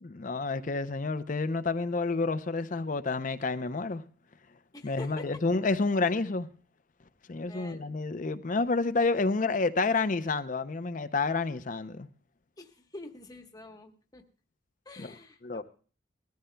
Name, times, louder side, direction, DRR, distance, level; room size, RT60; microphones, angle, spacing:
voice 1, 0.0-4.0 4.8-6.5 7.3-12.1 15.0-15.1 15.4-15.6, left 3 dB, 40° left, 0.5 m, -29 dB
voice 2, 4.7-5.2 7.5-7.8 12.6-14.2 14.9-15.6, left 2 dB, 20° left, 1.1 m, -46 dB
20.5 x 14.0 x 2.2 m
head